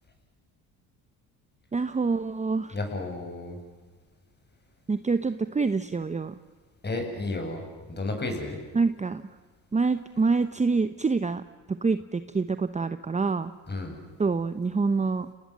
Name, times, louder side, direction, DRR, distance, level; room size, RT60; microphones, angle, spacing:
voice 1, 1.7-2.8 4.9-6.3 8.7-9.2 9.7-11.4 11.8-13.5 14.2-15.3, right 4 dB, 15° right, 11 dB, 0.9 m, -26 dB
voice 2, 2.7-3.6 6.8-7.6 7.9-8.6 13.7-13.9, left 2 dB, 25° left, 4 dB, 7.7 m, -32 dB
30.0 x 19.5 x 7.6 m, 1.4 s
supercardioid pair, 75°, 43 cm